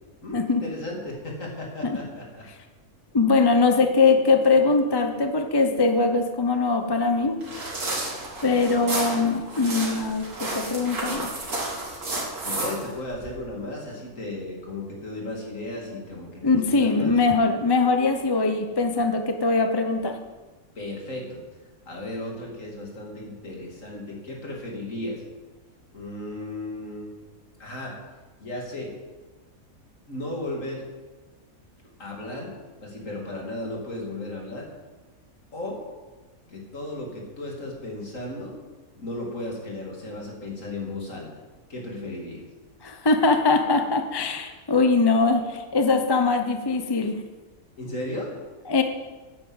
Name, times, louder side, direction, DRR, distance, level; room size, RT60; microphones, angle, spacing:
voice 1, 0.2-2.5 12.4-17.1 20.7-21.4 21.9-25.2 25.9-27.2 27.6-27.9 28.4-28.9 30.1-30.8 32.0-32.5 32.8-34.7 35.5-35.8 36.5-38.6 39.0-41.3 41.7-42.4 47.8-48.4, left 1 dB, 60° left, -2 dB, 3.2 m, -35 dB
voice 2, 3.1-7.4 8.4-11.3 16.4-20.2 42.8-47.2 48.7-48.8, left 3 dB, 20° left, 6 dB, 0.7 m, -21 dB
sound 1, 7.4-13.3, right 2 dB, 85° right, 3.2 m, -31 dB
10.5 x 8.8 x 8.1 m, 1.3 s
omnidirectional pair, 1.5 m